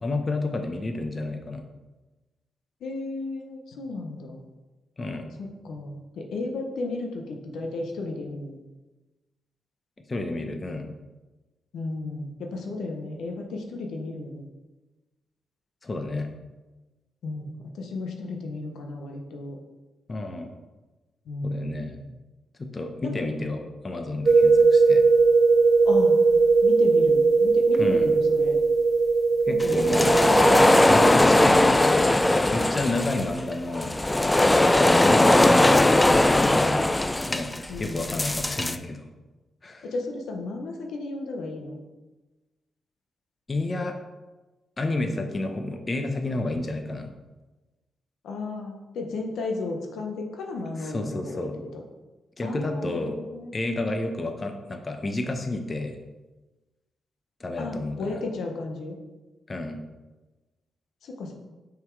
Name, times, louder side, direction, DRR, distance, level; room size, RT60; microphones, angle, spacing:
voice 1, 0.0-1.6 5.0-5.3 10.1-10.9 15.8-16.3 20.1-20.5 21.4-22.0 22.6-25.0 27.8-28.1 29.5-30.2 30.9-33.9 34.4-36.9 37.3-37.5 37.8-39.0 39.6-39.9 43.5-44.0 44.8-47.1 50.8-51.5 52.4-53.2 53.5-56.0 57.4-58.2 59.5-59.8, left 2 dB, 40° left, 5 dB, 0.8 m, -31 dB
voice 2, 2.8-4.4 5.4-8.6 11.7-14.5 17.2-19.6 21.3-22.1 23.0-23.4 25.8-26.2 26.6-28.6 29.5-30.9 37.7-38.0 39.8-41.8 48.2-51.8 52.4-53.5 57.6-59.0 61.0-61.3, left 2 dB, 75° left, 2 dB, 0.8 m, -34 dB
sound 1, 24.2-31.1, right 4 dB, 50° right, 0.5 m, -19 dB
sound 2, 29.6-38.8, left 1 dB, 20° left, 0.4 m, -19 dB
5.7 x 4.0 x 4.6 m, 1.2 s
supercardioid pair, 50°, 0 cm